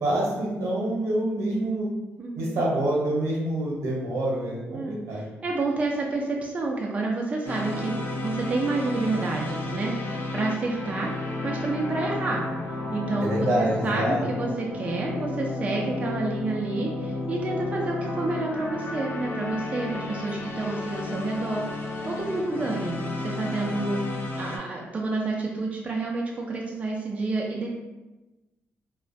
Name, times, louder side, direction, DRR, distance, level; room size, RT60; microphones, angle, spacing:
voice 1, 0.0-1.9 2.4-5.3 13.2-14.3, right 1 dB, 85° right, -3 dB, 0.7 m, -26 dB
voice 2, 2.2-2.6 4.7-11.1 11.4-12.4 12.9-24.0 24.4-27.7, right 2 dB, 30° right, -1 dB, 0.3 m, -29 dB
sound 1, 7.5-24.6, left 2 dB, 50° left, 0.4 m, -32 dB
2.3 x 2.1 x 2.5 m, 1.1 s
cardioid pair, 125°, 5 cm